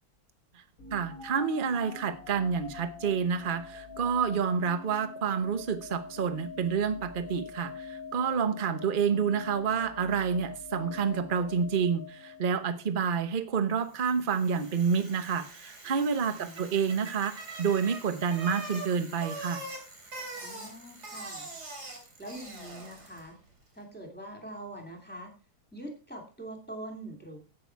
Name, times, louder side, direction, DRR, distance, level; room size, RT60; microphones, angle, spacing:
sound 1, 0.8-12.9, left 5 dB, 60° left, 1.4 m, -45 dB
voice 1, 0.9-19.6, right 6 dB, 35° right, 10 dB, 1.0 m, -29 dB
Bicycle, 13.9-23.3, right 2 dB, 75° right, 3.5 m, -43 dB
voice 2, 16.3-17.1 20.4-21.5 22.2-23.4 23.7-25.3 25.7-27.4, right 1 dB, 5° left, 3 dB, 2.7 m, -44 dB
11.0 x 8.9 x 4.6 m, 0.36 s
omnidirectional pair, 1.7 m